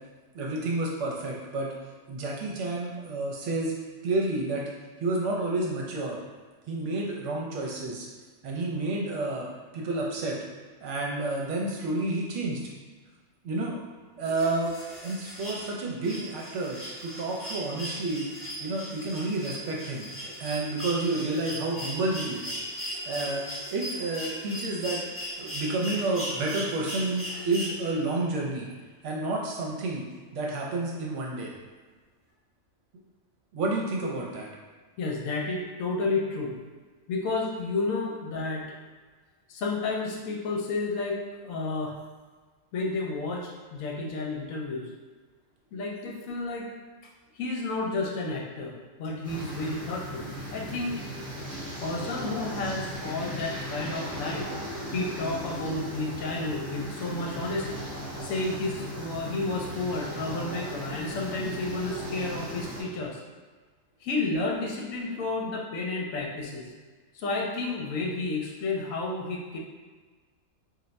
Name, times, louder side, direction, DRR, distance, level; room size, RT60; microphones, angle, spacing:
voice 1, 0.3-1.7 2.1-3.7 4.0-4.6 5.0-6.2 6.7-8.1 8.4-9.5 9.7-10.4 10.8-12.6 13.4-13.8 14.2-14.7 15.0-18.3 18.6-20.1 20.4-25.0 25.4-28.7 29.0-30.0 30.3-31.5 33.5-34.5, right 2 dB, 65° right, -2 dB, 0.9 m, -30 dB
sound 1, 14.2-28.2 29.6-29.7, equal, 15° left, 0.4 m, -38 dB
voice 2, 35.0-36.6 37.1-38.6 39.5-42.0 42.7-44.9 45.7-46.7 47.4-51.0 51.8-54.5 54.9-57.9 58.2-63.2 64.0-66.7 67.1-69.6, left 3 dB, 75° left, -1 dB, 1.0 m, -31 dB
sound 2, 49.2-62.8, equal, 10° right, 0.9 m, -37 dB
2.4 x 2.2 x 3.9 m, 1.4 s
omnidirectional pair, 1.5 m